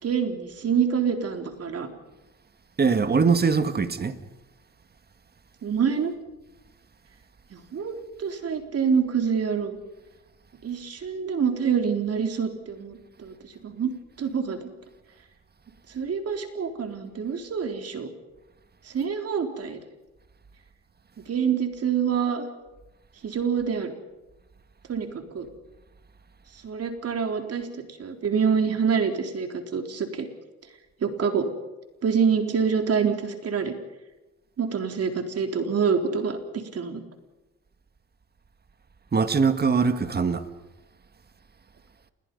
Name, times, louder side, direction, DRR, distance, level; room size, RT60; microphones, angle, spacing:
voice 1, 0.0-1.9 5.6-6.1 7.5-9.8 10.6-13.9 14.2-14.7 15.9-18.1 18.9-19.8 21.3-22.5 23.2-23.9 24.9-25.5 26.6-27.7 28.0-29.5 29.7-30.3 31.0-31.5 32.0-33.7 34.6-37.0, right 6 dB, 55° right, 3.8 m, -26 dB
voice 2, 2.8-4.1 39.1-40.4, right 5 dB, 30° right, 1.9 m, -22 dB
29.0 x 21.5 x 5.5 m
cardioid pair, 90°, 30 cm